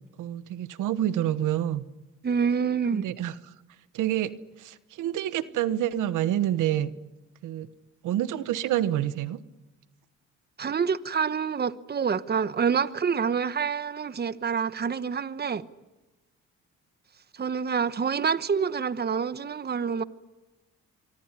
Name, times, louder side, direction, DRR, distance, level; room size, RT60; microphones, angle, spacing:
voice 1, 0.2-1.8 2.9-3.5 3.9-4.3 4.6-6.9 7.4-7.7 8.0-9.4, right 12 dB, 85° right, 1.2 m, -27 dB
voice 2, 2.2-3.1 10.6-15.7 17.4-20.0, right 6 dB, 35° right, 1.1 m, -27 dB
24.5 x 24.0 x 9.9 m
cardioid pair, 90°, 30 cm